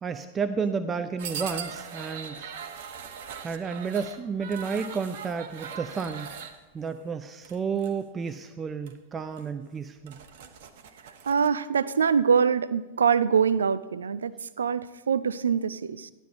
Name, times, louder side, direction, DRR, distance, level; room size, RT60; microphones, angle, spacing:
voice 1, 0.0-2.4 3.4-6.3 6.7-10.2, right 5 dB, 20° right, 9 dB, 0.5 m, -31 dB
sound 1, 1.2-6.5 7.4-7.9 8.3-8.5 8.9-9.0 9.4-9.5 9.9-11.5, right 7 dB, 55° right, 1.0 m, -40 dB
voice 2, 11.0-16.1, right 6 dB, 70° right, 15 dB, 0.4 m, -24 dB
13.5 x 11.5 x 4.2 m, 1.2 s
figure-of-eight pair, 90°, 0 cm